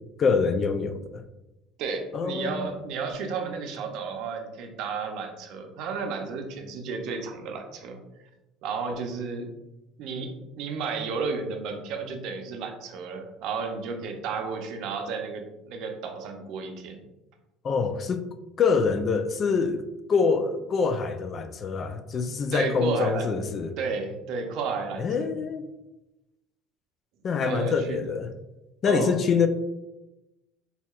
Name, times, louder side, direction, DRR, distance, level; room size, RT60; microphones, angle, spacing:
voice 1, 0.2-1.2 2.1-2.8 17.6-18.3 18.6-19.8 20.1-23.8 25.0-25.6 27.2-28.3 28.8-29.5, left 5 dB, 40° left, 9 dB, 0.3 m, -25 dB
voice 2, 1.8-8.0 8.6-9.5 10.0-17.0 22.5-23.3 23.8-25.3 27.4-28.0 28.8-29.1, right 5 dB, 65° right, 4 dB, 0.6 m, -32 dB
4.1 x 2.7 x 2.4 m, 0.96 s
supercardioid pair, 100°, 0 cm